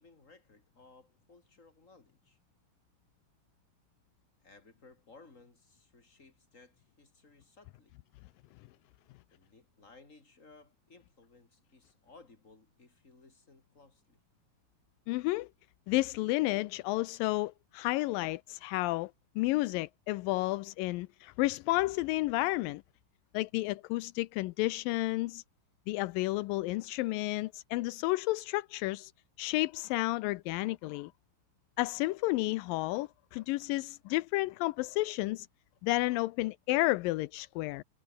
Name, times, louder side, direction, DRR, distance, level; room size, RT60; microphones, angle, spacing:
voice 1, 0.0-2.4 4.4-7.9 9.3-14.2, left 3 dB, 20° left, 4.4 m, -59 dB
voice 2, 15.1-15.5 15.9-22.8 23.3-25.4 25.9-29.1 29.4-31.1 31.8-35.5 35.8-37.8, left 19 dB, 85° left, 2.3 m, -31 dB
omnidirectional pair, 4.0 m